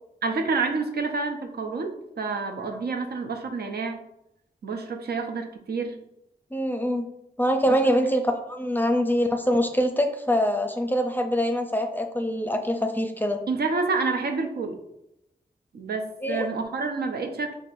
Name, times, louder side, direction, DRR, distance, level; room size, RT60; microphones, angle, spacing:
voice 1, 0.2-4.0 4.6-6.0 7.7-8.0 13.5-14.8 15.7-17.6, right 4 dB, 70° right, 4 dB, 0.6 m, -28 dB
voice 2, 6.5-7.1 7.4-13.4 16.2-16.5, equal, 10° left, 5 dB, 0.5 m, -24 dB
4.6 x 2.5 x 2.6 m, 0.83 s
cardioid pair, 50°, 17 cm